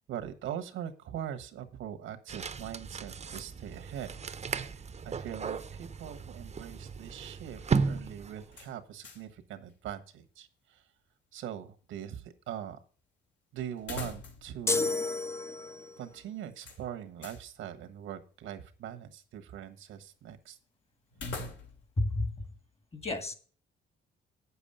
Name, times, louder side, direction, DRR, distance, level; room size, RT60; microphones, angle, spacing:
voice 1, 0.1-4.1 4.7-10.9 11.3-12.8 13.5-14.9 16.0-20.6, right 10 dB, 85° right, 8 dB, 1.3 m, -42 dB
sound 1, 2.3-8.6, right 5 dB, 35° right, 0.7 m, -35 dB
sound 2, 8.5-9.4 9.7-9.8 13.8-14.6 14.9-15.0 16.6-17.5 21.1-22.0, left 3 dB, 65° left, 2.6 m, -42 dB
sound 3, 14.7-16.0, left 3 dB, 15° left, 0.7 m, -31 dB
voice 2, 22.0-22.5 22.9-23.3, left 2 dB, 30° left, 9 dB, 1.9 m, -31 dB
8.3 x 7.0 x 5.5 m, 0.40 s
cardioid pair, 90°, 20 cm